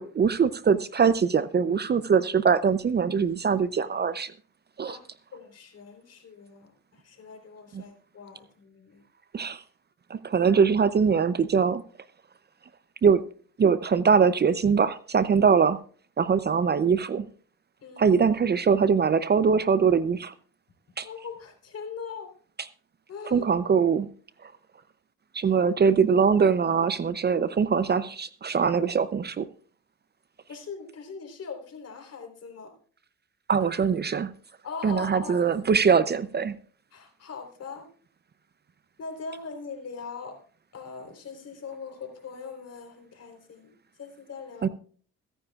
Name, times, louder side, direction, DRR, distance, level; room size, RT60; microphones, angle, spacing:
voice 1, 0.0-4.3 4.8-5.0 7.7-7.8 9.3-9.6 10.1-11.8 13.0-13.2 13.6-15.8 16.2-17.3 18.0-20.3 21.0-21.1 23.3-24.1 25.3-29.5 33.5-34.3 34.8-36.5 44.6-44.7, right 6 dB, 35° right, 14 dB, 0.6 m, -22 dB
voice 2, 5.3-9.0 17.8-18.2 21.0-22.3 23.1-23.5 25.4-25.6 30.5-32.7 34.6-35.4 36.9-37.9 39.0-40.4 40.7-43.7 44.0-44.7, left 5 dB, 55° left, 4 dB, 3.7 m, -41 dB
22.5 x 9.9 x 2.4 m, 0.43 s
cardioid pair, 90°, 30 cm